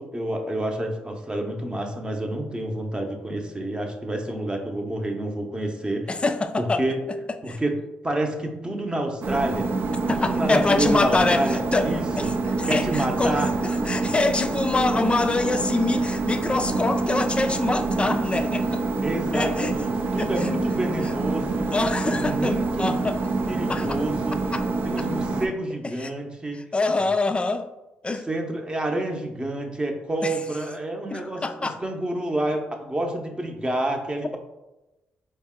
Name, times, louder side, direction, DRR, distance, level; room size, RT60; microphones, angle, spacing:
voice 1, 0.0-6.1 6.6-7.0 7.4-7.7 8.0-9.7 10.2-11.6 11.8-12.3 12.7-13.5 19.0-21.7 22.0-23.0 23.5-24.4 24.8-26.6 28.3-34.4, right 1 dB, 20° right, 3 dB, 0.8 m, -28 dB
voice 2, 6.1-6.8 7.5-7.6 10.1-18.8 19.3-19.8 20.2-20.5 21.7-23.2 23.7-24.0 24.5-24.6 25.0-25.1 25.8-26.1 26.5-27.7 28.0-28.3 30.2-30.4 31.1-31.8, left 3 dB, 25° left, 9 dB, 0.4 m, -25 dB
sound 1, 9.2-25.5, right 3 dB, 60° right, 0.5 m, -26 dB
4.0 x 2.2 x 3.6 m, 1.0 s
supercardioid pair, 55°, 4 cm